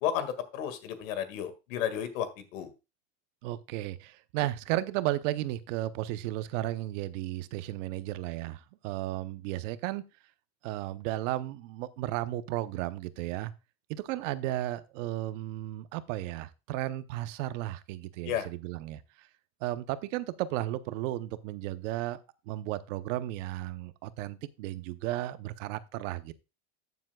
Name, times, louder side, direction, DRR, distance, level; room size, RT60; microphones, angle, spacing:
voice 1, 0.0-2.7 18.2-18.5, left 9 dB, 85° left, 11 dB, 2.0 m, -33 dB
voice 2, 3.4-10.0 10.6-13.5 13.9-19.0 19.6-22.2 22.5-26.3, right 15 dB, 75° right, 13 dB, 0.9 m, -34 dB
13.5 x 7.2 x 2.3 m, 0.27 s
supercardioid pair, 135°, 38 cm